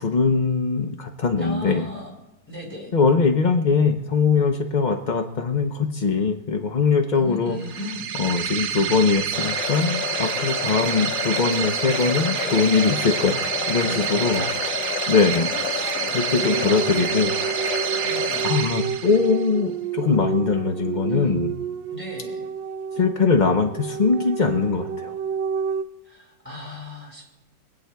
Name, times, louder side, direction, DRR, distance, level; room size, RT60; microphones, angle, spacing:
voice 1, 0.0-1.8 2.9-7.6 8.2-14.4 15.1-15.9 16.1-17.4 18.4-21.5 23.0-25.1, left 5 dB, 65° left, 4 dB, 0.4 m, -21 dB
voice 2, 1.4-2.1 2.5-2.9 7.1-8.1 10.6-10.9 12.4-12.7 13.8-14.5 15.3-16.8 18.0-18.5 21.1-21.4 21.9-22.5 26.0-27.2, left 1 dB, 5° left, -4 dB, 4.5 m, -37 dB
sound 1, 7.6-19.5, right 8 dB, 65° right, 0.9 m, -28 dB
sound 2, 9.3-18.5, left 9 dB, 80° left, 1.4 m, -31 dB
sound 3, 12.8-15.2 16.4-25.8, right 7 dB, 85° right, 1.3 m, -31 dB
25.5 x 9.0 x 2.3 m, 0.95 s
omnidirectional pair, 2.0 m